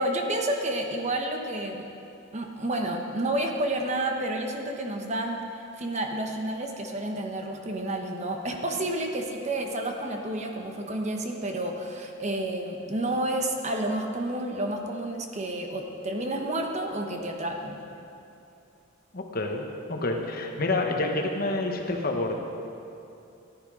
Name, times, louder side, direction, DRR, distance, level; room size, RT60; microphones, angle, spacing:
voice 1, 0.0-1.8 2.3-5.4 5.8-17.8, right 1 dB, 35° right, 2 dB, 1.0 m, -30 dB
voice 2, 19.1-22.3, left 2 dB, 50° left, 2 dB, 1.2 m, -28 dB
14.5 x 10.5 x 5.0 m, 2.8 s
head